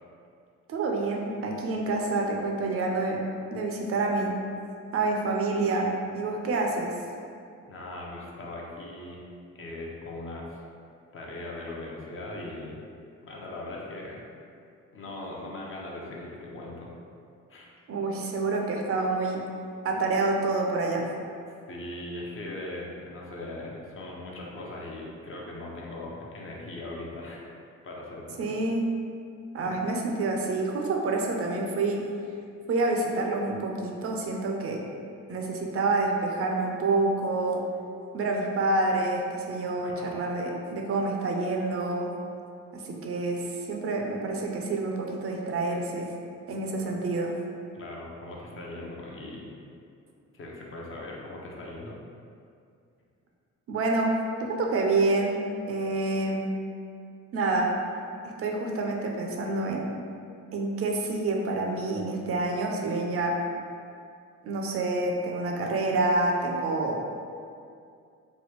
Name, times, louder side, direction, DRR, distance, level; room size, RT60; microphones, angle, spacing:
voice 1, 0.7-3.2 3.5-4.4 4.9-7.0 17.9-19.4 19.8-21.1 28.4-28.9 29.5-32.0 32.7-34.8 35.3-37.7 38.1-42.1 42.7-46.1 46.5-47.3 53.7-55.4 55.7-56.5 57.3-57.7 58.2-60.0 60.5-63.4 64.4-67.0, right 2 dB, 50° right, 0 dB, 0.5 m, -28 dB
voice 2, 7.7-9.2 9.5-10.6 11.1-12.8 13.2-14.2 14.9-16.9 17.5-17.7 21.7-27.5 27.8-28.5 29.6-29.8 39.8-40.1 46.8-46.9 47.7-49.5 50.3-52.0, left 2 dB, 45° left, -3 dB, 0.6 m, -39 dB
3.1 x 2.3 x 3.2 m, 2.4 s
cardioid pair, 90°, 30 cm